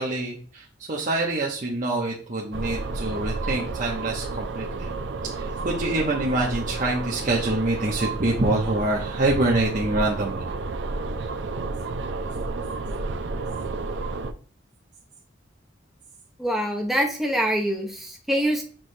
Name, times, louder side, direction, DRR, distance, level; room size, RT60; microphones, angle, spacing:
voice 1, 0.0-4.9 5.6-10.5, right 2 dB, 40° right, -3 dB, 0.8 m, -25 dB
sound 1, 2.5-14.3, right 3 dB, 60° right, 0.4 m, -31 dB
voice 2, 16.4-18.6, equal, ahead, 1 dB, 0.7 m, -25 dB
6.1 x 3.1 x 2.6 m, 0.41 s
head